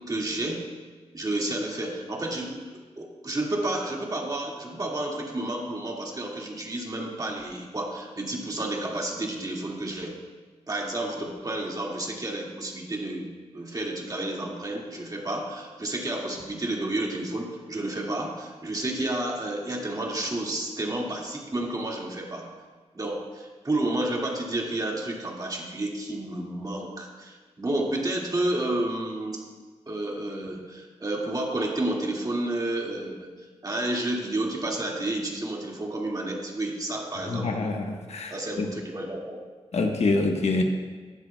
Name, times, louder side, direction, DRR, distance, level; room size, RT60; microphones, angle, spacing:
voice 1, 0.1-0.6 1.1-10.2 10.7-22.5 22.9-29.4 29.9-33.3 33.6-37.7 38.3-39.4, right 1 dB, 30° right, -1 dB, 2.0 m, -31 dB
voice 2, 37.3-38.7 39.7-40.6, left 3 dB, 65° left, 3 dB, 1.1 m, -26 dB
15.5 x 10.5 x 2.3 m, 1.4 s
cardioid pair, 80°, 12 cm